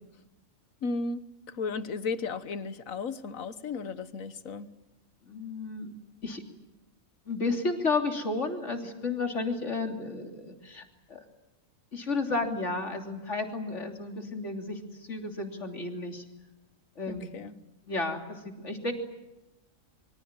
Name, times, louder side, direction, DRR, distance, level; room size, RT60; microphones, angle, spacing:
voice 1, 0.8-4.7 17.1-17.5, left 4 dB, 85° left, 13 dB, 1.6 m, -35 dB
voice 2, 5.2-5.9 6.2-6.4 7.2-11.2 11.9-16.2 16.9-17.3 17.9-18.9, left 3 dB, 60° left, 4 dB, 3.5 m, -32 dB
26.0 x 24.0 x 8.9 m, 0.96 s
omnidirectional pair, 1.4 m